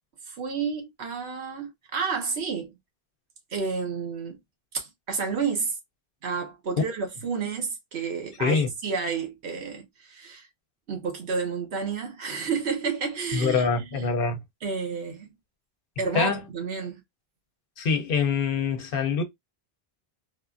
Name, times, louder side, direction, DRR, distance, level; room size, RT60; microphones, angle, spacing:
voice 1, 0.3-2.7 3.5-4.4 4.7-5.7 6.2-10.5 10.9-14.1 14.6-15.3 16.0-17.0, right 5 dB, 90° right, 1.3 m, -30 dB
voice 2, 13.3-14.4 16.1-16.4 17.8-19.2, left 5 dB, 60° left, 0.8 m, -24 dB
3.3 x 2.4 x 2.4 m
omnidirectional pair, 1.1 m